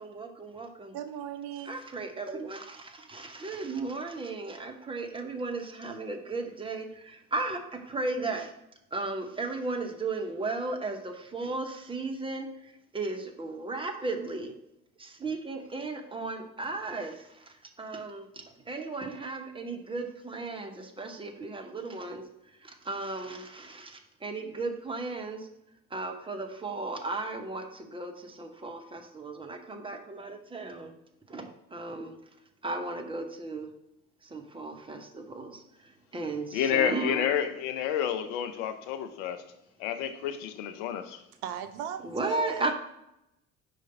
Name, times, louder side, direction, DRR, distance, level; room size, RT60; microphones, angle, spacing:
voice 1, 0.0-0.9 1.6-8.5 8.9-14.5 15.0-22.2 22.6-25.5 25.9-30.9 31.3-32.1 32.6-33.7 34.2-37.3 42.0-42.7, right 3 dB, 10° right, 0.8 m, -35 dB
voice 2, 0.9-1.8 41.4-42.7, right 9 dB, 50° right, 0.6 m, -37 dB
voice 3, 36.5-39.4 39.8-41.2, left 9 dB, 55° left, 0.7 m, -30 dB
5.0 x 3.9 x 5.5 m
figure-of-eight pair, 65°, 44 cm